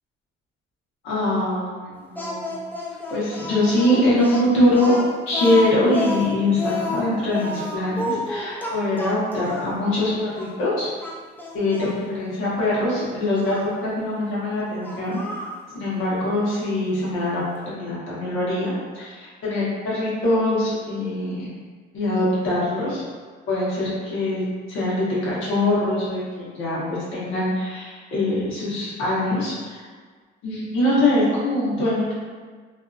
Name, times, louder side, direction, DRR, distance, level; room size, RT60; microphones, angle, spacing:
voice 1, 1.0-2.6 3.1-4.9 5.3-10.9 11.5-13.6 13.8-15.2 15.8-21.5 21.9-23.0 23.5-29.8 30.4-32.1, left 1 dB, 85° left, -8 dB, 1.1 m, -23 dB
Speech, 2.2-9.7 10.4-10.5 11.0-11.9 13.4-13.7 14.8-15.6, left 2 dB, 10° left, 0.5 m, -30 dB
2.6 x 2.5 x 2.4 m, 1.5 s
cardioid pair, 90°, 20 cm